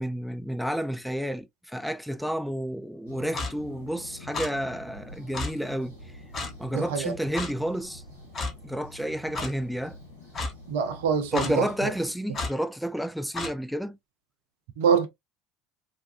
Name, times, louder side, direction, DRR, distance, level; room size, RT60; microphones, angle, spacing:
voice 1, 0.0-5.9 6.6-8.0 8.6-10.0 11.3-14.0, equal, ahead, 0.3 m, -30 dB
sound 1, 3.1-12.1, left 1 dB, 90° left, 1.6 m, -47 dB
Clock, 3.3-3.5 4.3-4.5 5.3-5.5 6.3-6.5 7.3-7.5 8.3-8.5 9.3-9.5 10.3-10.5 11.3-11.5 12.3-12.5 13.3-13.5, left 3 dB, 35° left, 1.0 m, -31 dB
voice 2, 6.7-7.1 10.7-11.9 14.8-15.1, right 7 dB, 70° right, 0.6 m, -25 dB
3.5 x 2.3 x 2.4 m
figure-of-eight pair, 65°, 0 cm